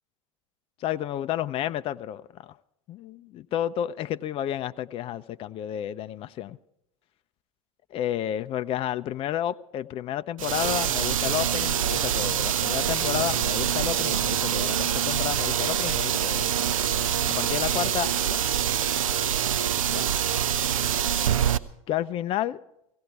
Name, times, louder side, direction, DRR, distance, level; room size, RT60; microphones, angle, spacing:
voice 1, 0.8-2.5 2.9-6.6 7.9-16.5 17.3-18.4 19.9-20.1 21.9-22.6, left 11 dB, 35° left, 0.5 m, -31 dB
sound 1, 10.4-21.6, right 9 dB, 75° right, 0.6 m, -25 dB
17.0 x 16.5 x 4.7 m
hypercardioid pair, 85°, 17 cm